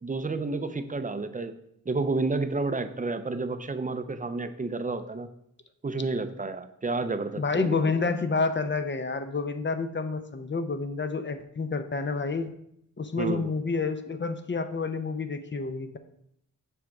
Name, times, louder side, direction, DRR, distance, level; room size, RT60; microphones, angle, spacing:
voice 1, 0.0-1.5 1.9-5.3 5.8-7.9 13.2-13.5, right 3 dB, 25° right, 10 dB, 0.5 m, -30 dB
voice 2, 7.4-12.5 13.0-16.0, left 4 dB, 35° left, 9 dB, 0.6 m, -29 dB
7.5 x 3.5 x 5.9 m, 0.74 s
wide cardioid pair, 100°, 33 cm